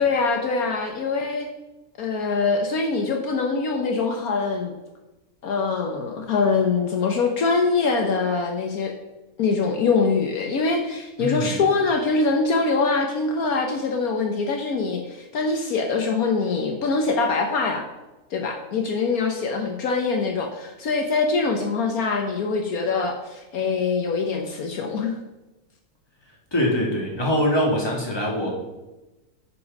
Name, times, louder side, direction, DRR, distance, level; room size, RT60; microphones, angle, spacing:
voice 1, 0.0-1.5 2.0-4.7 5.4-8.9 9.4-17.8 18.3-25.2, left 4 dB, 70° left, 3 dB, 1.4 m, -23 dB
voice 2, 11.2-11.5 26.5-28.5, equal, 15° left, -2 dB, 2.2 m, -23 dB
9.6 x 5.3 x 5.3 m, 1.0 s
omnidirectional pair, 1.6 m